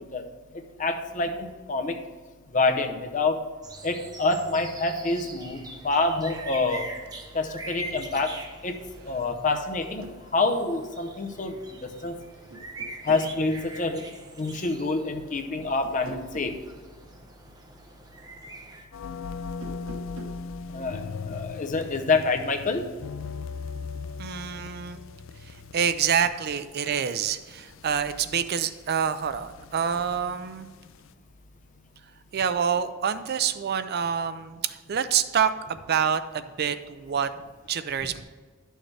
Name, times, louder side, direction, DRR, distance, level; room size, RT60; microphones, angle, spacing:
voice 1, 0.8-2.0 2.5-3.5 3.8-6.9 7.3-8.4 8.6-8.8 9.0-10.0 10.3-12.2 13.0-14.1 14.4-16.6 20.7-22.9 38.0-38.1, left 3 dB, 40° left, 5 dB, 0.7 m, -27 dB
sound 1, 3.6-18.9, right 2 dB, 20° right, 0.7 m, -43 dB
sound 2, 10.0-10.2 11.8-12.1 12.5-13.3 15.8-16.6 19.5-20.5, right 1 dB, 85° right, 1.1 m, -43 dB
sound 3, 18.9-31.1, left 5 dB, 65° left, 0.4 m, -39 dB
voice 2, 24.2-25.0 25.5-30.7 32.3-37.3 37.7-38.2, right 7 dB, 50° right, 12 dB, 0.4 m, -27 dB
11.0 x 6.3 x 3.3 m, 1.5 s
head